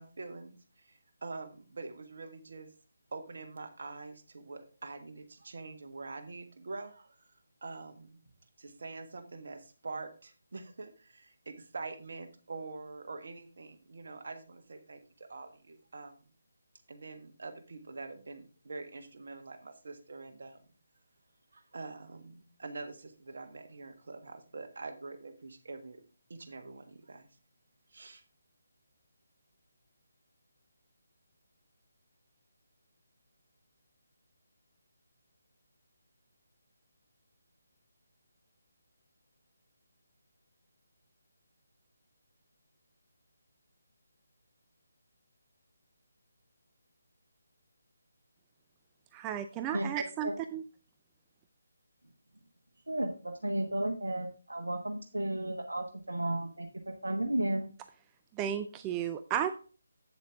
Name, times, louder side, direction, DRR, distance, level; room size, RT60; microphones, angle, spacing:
voice 1, 0.0-2.7 3.1-7.3 7.6-8.2 8.6-16.1 16.9-20.6 21.5-26.0 26.3-27.3 27.9-28.2, right 3 dB, 50° right, 6 dB, 1.5 m, -45 dB
voice 2, 49.1-50.6 58.4-59.5, right 9 dB, 15° right, 9 dB, 0.4 m, -34 dB
voice 3, 52.9-57.7, right 1 dB, 75° right, 4 dB, 1.2 m, -33 dB
8.5 x 7.4 x 3.5 m, 0.37 s
figure-of-eight pair, 150°, 0 cm